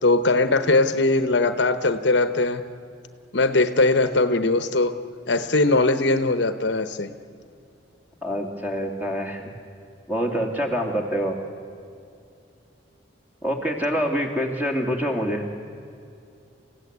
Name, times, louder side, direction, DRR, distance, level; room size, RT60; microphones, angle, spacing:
voice 1, 0.0-2.6 3.3-4.9 5.3-7.1, left 2 dB, 60° left, 10 dB, 1.0 m, -20 dB
voice 2, 8.2-9.5 10.1-11.4 13.4-15.5, equal, 10° right, 2 dB, 2.6 m, -26 dB
29.5 x 16.0 x 8.2 m, 2.6 s
head